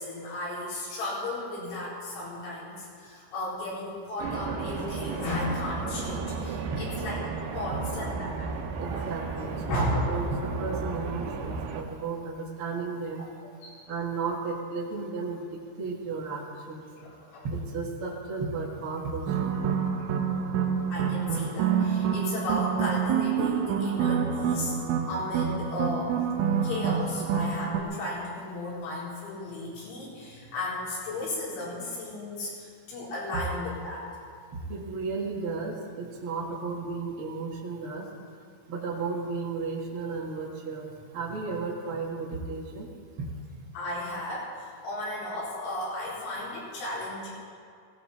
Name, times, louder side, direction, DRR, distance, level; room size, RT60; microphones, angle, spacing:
voice 1, 0.0-8.6 8.9-9.1 9.7-10.1 13.2-13.3 13.6-13.8 17.0-17.5 19.7-20.1 20.9-24.7 25.1-26.3 26.6-34.1 43.7-47.3, left 1 dB, 75° left, -7 dB, 6.6 m, -34 dB
sound 1, 4.2-11.8, right 4 dB, 75° right, 3.3 m, -34 dB
voice 2, 8.8-13.3 13.9-15.4 15.8-16.8 17.4-19.5 33.3-33.4 34.7-38.1 38.7-40.9 41.1-42.9, right 4 dB, 60° right, -3 dB, 1.4 m, -34 dB
sound 2, 19.3-27.8, right 7 dB, 90° right, 3.6 m, -27 dB
18.5 x 17.0 x 4.3 m, 2.2 s
omnidirectional pair, 5.4 m